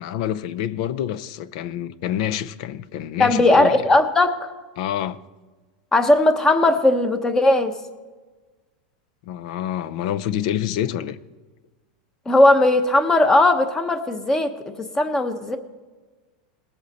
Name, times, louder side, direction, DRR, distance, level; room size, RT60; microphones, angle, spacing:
voice 1, 0.0-3.8 4.8-5.2 9.3-11.2, left 11 dB, 60° left, 0.6 m, -27 dB
voice 2, 3.2-4.5 5.9-7.7 12.3-14.5 14.8-15.6, left 2 dB, 15° left, 0.9 m, -18 dB
19.5 x 8.0 x 4.2 m
supercardioid pair, 140°, 4 cm